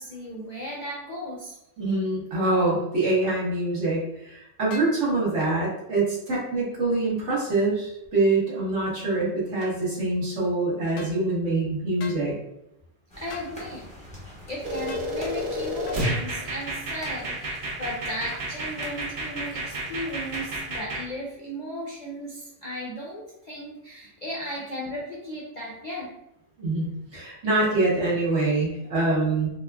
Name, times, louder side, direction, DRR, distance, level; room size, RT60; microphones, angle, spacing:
voice 1, 0.0-1.6 13.2-13.9 14.5-26.1, equal, 50° left, -4 dB, 0.5 m, -36 dB
voice 2, 1.8-12.3 26.6-26.9 27.1-29.5, right 2 dB, 65° right, -6 dB, 1.6 m, -25 dB
sound 1, 4.7-5.0 9.6-9.8 11.0-11.2 12.0-12.2 13.3-13.5 14.9-15.1 15.9-16.0, left 4 dB, 70° left, 0.9 m, -41 dB
sound 2, 13.1-20.8, left 1 dB, 5° left, 0.7 m, -45 dB
sound 3, 14.6-21.0, right 1 dB, 45° right, 0.8 m, -31 dB
4.6 x 2.3 x 2.2 m, 0.83 s
omnidirectional pair, 1.4 m